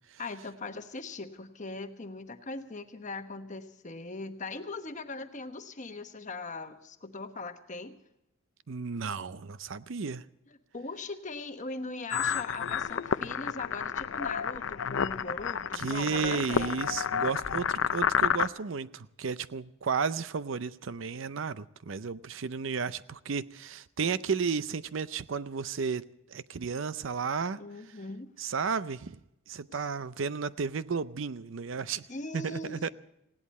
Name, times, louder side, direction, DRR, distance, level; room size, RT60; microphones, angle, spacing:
voice 1, 0.2-8.0 10.7-16.7 27.6-28.3 29.7-29.8 32.1-32.9, left 3 dB, 35° left, 1.1 m, -40 dB
voice 2, 8.7-10.2 15.7-27.6 28.4-29.1 29.5-32.0 32.3-32.9, right 5 dB, 65° right, 0.6 m, -33 dB
sound 1, 12.1-18.5, left 7 dB, 70° left, 0.5 m, -30 dB
19.5 x 17.0 x 4.2 m
head